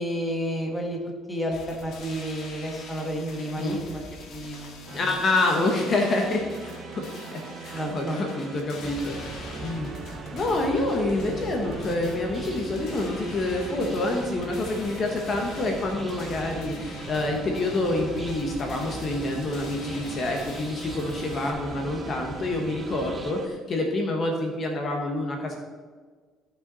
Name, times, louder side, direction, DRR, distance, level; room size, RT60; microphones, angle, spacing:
voice 1, 0.0-4.0 4.3-5.1 7.7-8.3 19.8-20.0, equal, 5° left, 0 dB, 1.7 m, -31 dB
sound 1, 1.5-21.5, left 3 dB, 60° left, 2.0 m, -44 dB
voice 2, 4.9-9.9 10.3-25.6, left 2 dB, 35° left, 2 dB, 1.4 m, -27 dB
sound 2, 4.9-23.5, right 6 dB, 45° right, 0.9 m, -42 dB
sound 3, 8.8-23.3, right 2 dB, 10° right, 0.9 m, -41 dB
15.0 x 5.8 x 4.2 m, 1.5 s
cardioid pair, 135°, 0 cm